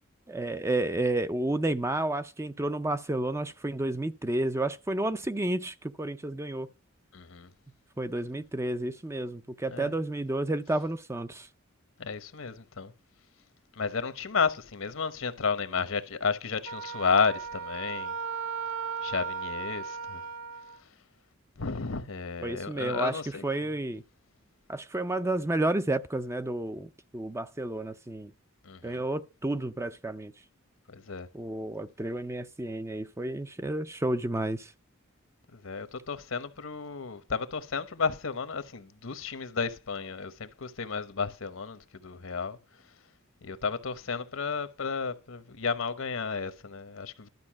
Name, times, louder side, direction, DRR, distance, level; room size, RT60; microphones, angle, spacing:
voice 1, 0.3-6.7 8.0-11.5 22.4-24.0 24.7-28.3 28.8-30.3 31.3-34.7, right 2 dB, 15° right, 0.4 m, -31 dB
voice 2, 7.1-7.5 9.7-9.9 12.0-12.9 13.8-18.1 19.0-20.2 21.6-23.4 28.6-29.0 30.9-31.3 35.5-42.6 43.4-47.3, left 5 dB, 75° left, 0.9 m, -32 dB
Wind instrument woodwind instrument, 16.7-20.8, right 6 dB, 75° right, 0.6 m, -36 dB
12.0 x 5.2 x 7.4 m
head